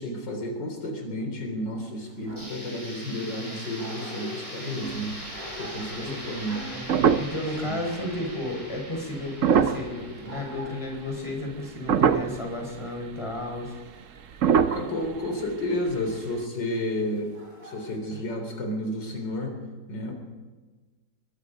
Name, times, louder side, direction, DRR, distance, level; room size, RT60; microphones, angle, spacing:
voice 1, 0.0-5.2 5.6-6.6 7.6-7.8 14.7-17.3 17.6-19.6 19.9-20.1, left 1 dB, 75° left, 3 dB, 4.3 m, -31 dB
Dog, 2.0-18.0, equal, 35° right, 4.0 m, -47 dB
sound 1, 2.4-12.1, equal, 15° right, 6.6 m, -42 dB
sound 2, 4.8-5.6 6.0-6.1 6.5-7.6 8.0-8.2 9.2-10.7 11.1-11.5 11.9-12.5 13.0-13.1 13.3-13.5 14.3-15.9 16.2-16.3, right 7 dB, 55° right, 1.0 m, -24 dB
voice 2, 6.7-13.8 18.1-18.2, left 1 dB, 15° left, 1 dB, 4.9 m, -33 dB
23.0 x 22.0 x 5.3 m, 1.3 s
omnidirectional pair, 1.9 m